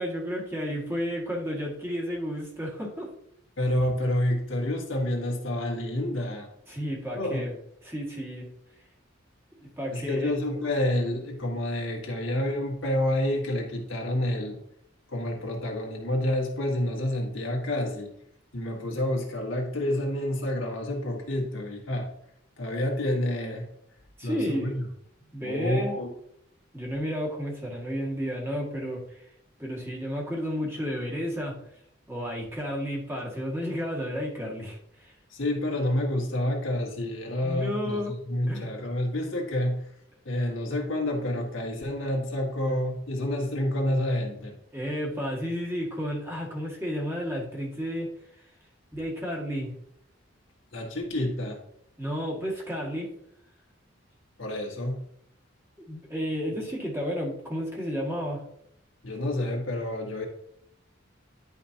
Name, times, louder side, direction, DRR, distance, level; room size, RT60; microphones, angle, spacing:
voice 1, 0.0-3.1 6.7-7.5 7.8-8.5 9.8-10.3 24.2-24.7 25.3-26.0 26.7-29.3 29.6-31.5 32.1-35.1 37.4-38.2 38.5-38.7 44.7-48.1 48.9-49.7 52.0-53.1 55.9-58.4, equal, 15° right, -3 dB, 1.9 m, -32 dB
voice 2, 3.6-6.5 7.1-7.4 9.9-14.6 15.1-18.1 18.5-22.1 22.6-23.7 24.2-24.8 25.2-26.1 35.3-39.8 40.3-44.5 50.7-51.6 54.4-55.0 59.0-60.3, left 1 dB, 75° left, 0 dB, 1.9 m, -28 dB
10.5 x 5.2 x 2.8 m, 0.73 s
head